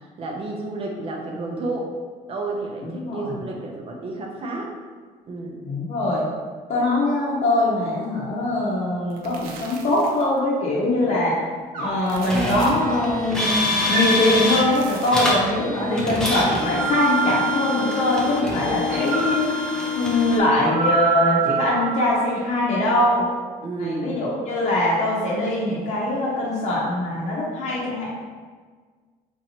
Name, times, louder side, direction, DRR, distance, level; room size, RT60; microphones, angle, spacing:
voice 1, 0.2-2.0 2.3-4.7 5.3-5.6 11.0-11.3 23.6-24.2, right 2 dB, 40° right, 0 dB, 0.7 m, -31 dB
voice 2, 2.8-3.3 5.6-6.3 6.7-11.3 11.8-13.6 13.9-19.7 19.9-23.3 23.8-28.1, left 1 dB, 50° left, -5 dB, 0.8 m, -22 dB
sound 1, 8.9-10.4 11.8-12.9 14.4-15.5, right 4 dB, 85° right, 0.6 m, -40 dB
sound 2, 11.7-13.1 13.7-15.0 16.5-18.2 18.9-22.4, right 5 dB, 60° right, 0.9 m, -27 dB
sound 3, 12.3-14.7 15.1-20.4, left 2 dB, 5° left, 0.6 m, -25 dB
4.5 x 2.7 x 2.9 m, 1.5 s
cardioid pair, 140°, 15 cm